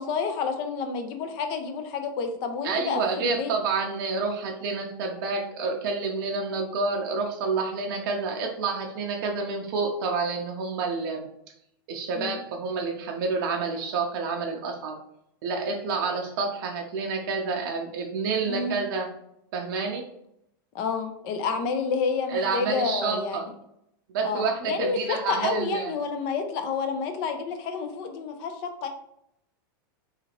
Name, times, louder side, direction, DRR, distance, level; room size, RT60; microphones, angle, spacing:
voice 1, 0.0-3.5 12.1-12.4 16.1-16.2 18.5-18.8 20.7-23.5 24.2-28.9, left 5 dB, 45° left, 6 dB, 0.5 m, -29 dB
voice 2, 2.6-11.3 11.9-15.0 15.4-19.1 19.5-20.0 22.3-23.4 24.1-25.9, right 4 dB, 55° right, 1 dB, 0.5 m, -29 dB
2.8 x 2.4 x 2.8 m, 0.76 s
supercardioid pair, 140°, 12 cm